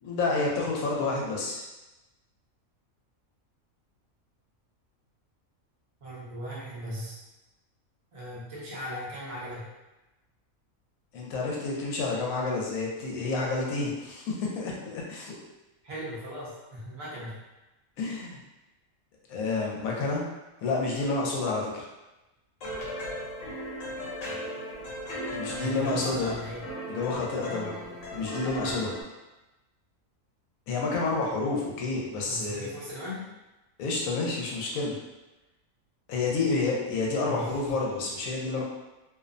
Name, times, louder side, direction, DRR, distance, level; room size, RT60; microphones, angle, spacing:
voice 1, 0.0-1.7 11.1-15.4 18.0-18.4 19.3-20.2 20.6-21.9 25.3-26.3 26.9-27.8 28.1-29.0 30.7-32.7 33.8-35.0 36.1-38.6, left 3 dB, 85° left, -2 dB, 1.0 m, -29 dB
voice 2, 6.0-7.2 8.1-9.7 15.8-17.4 25.5-26.6 32.3-33.2 37.2-37.5, equal, 35° right, -7 dB, 0.6 m, -38 dB
sound 1, 22.6-29.0, equal, 70° left, 1.1 m, -37 dB
2.6 x 2.0 x 2.4 m, 1.0 s
omnidirectional pair, 1.4 m